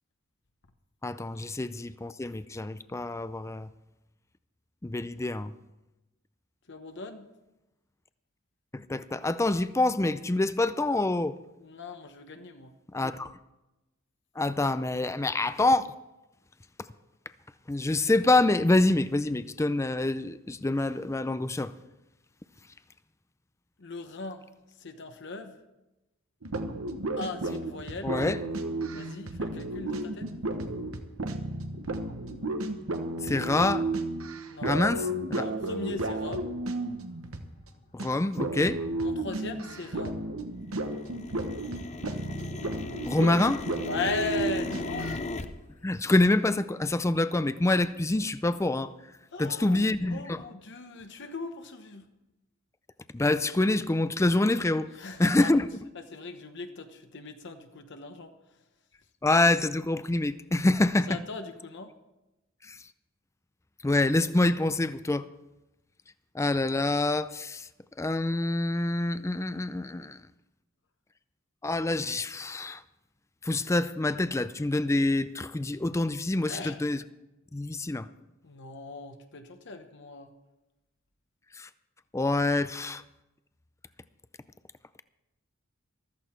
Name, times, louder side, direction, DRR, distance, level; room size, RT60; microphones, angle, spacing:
voice 1, 1.0-3.7 4.8-5.5 8.7-11.3 12.9-13.4 14.4-15.9 17.7-21.7 28.0-28.4 33.2-33.9 34.6-35.5 37.9-38.8 43.1-43.6 45.8-48.9 49.4-50.4 53.1-54.9 55.2-55.7 59.2-61.2 62.6-62.8 63.8-65.3 66.3-67.7 68.0-70.2 71.6-72.8 73.4-77.0 77.5-78.1 81.6-81.7 82.1-83.0, left 2 dB, 15° left, 0.4 m, -26 dB
voice 2, 6.7-7.3 11.6-12.7 23.8-24.5 24.8-25.6 27.2-28.1 28.9-30.3 34.5-34.8 35.4-36.6 39.0-40.2 43.8-45.2 49.3-52.0 54.9-55.5 55.9-58.3 61.1-61.9 76.5-76.8 78.4-80.3, left 3 dB, 60° left, 1.1 m, -38 dB
sound 1, 26.4-37.7 38.0-38.1 38.4-45.2, right 2 dB, 80° right, 1.2 m, -33 dB
sound 2, 36.8-36.9 37.2-37.7 38.0-40.3 40.6-45.5, left 3 dB, 35° left, 0.8 m, -39 dB
14.5 x 13.5 x 4.5 m
head